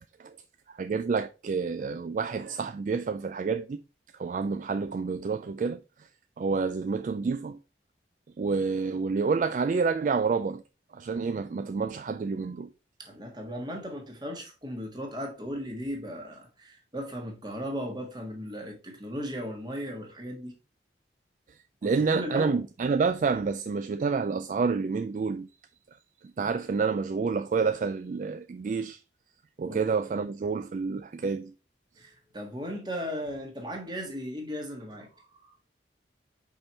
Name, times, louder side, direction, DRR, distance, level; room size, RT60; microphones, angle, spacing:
voice 1, 0.7-3.8 4.2-6.1 6.4-7.6 8.4-10.6 10.9-12.7 21.8-25.5 26.4-29.0 29.6-31.5, right 5 dB, 45° right, 0.3 m, -28 dB
voice 2, 13.0-20.5 21.8-22.6 29.6-29.8 32.0-35.6, equal, 25° right, 1.5 m, -37 dB
5.4 x 4.4 x 4.2 m
head